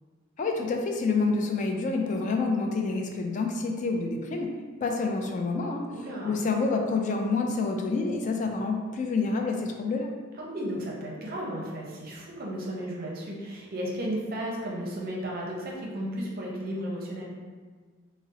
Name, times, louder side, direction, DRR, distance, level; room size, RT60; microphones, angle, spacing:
voice 1, 0.4-4.5 4.8-5.8 6.2-10.1, left 3 dB, 40° left, 3 dB, 0.3 m, -28 dB
voice 2, 5.9-6.4 10.4-17.3, equal, 50° right, -3 dB, 0.5 m, -34 dB
2.6 x 2.0 x 3.8 m, 1.5 s
head